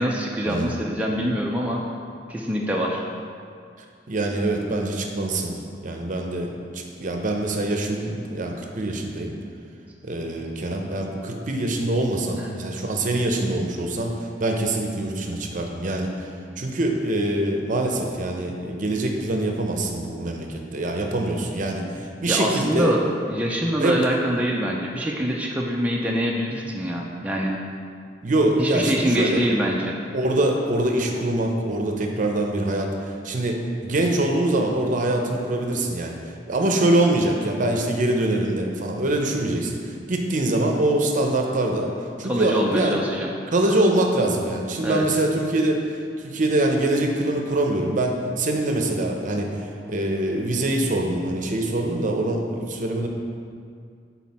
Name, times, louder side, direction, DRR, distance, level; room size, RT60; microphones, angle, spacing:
voice 1, 0.0-1.8 2.3-3.0 12.4-12.6 22.3-27.6 28.6-30.0 42.2-43.3 44.8-45.1, equal, 10° right, -3 dB, 0.4 m, -25 dB
voice 2, 4.1-5.5 5.8-9.3 10.0-16.1 16.6-23.0 23.8-23.9 28.2-29.4 30.1-36.2 36.5-41.9 42.2-43.0 43.5-45.8 46.2-53.1, right 1 dB, 45° right, 2 dB, 0.6 m, -24 dB
6.0 x 4.1 x 4.2 m, 2.3 s
head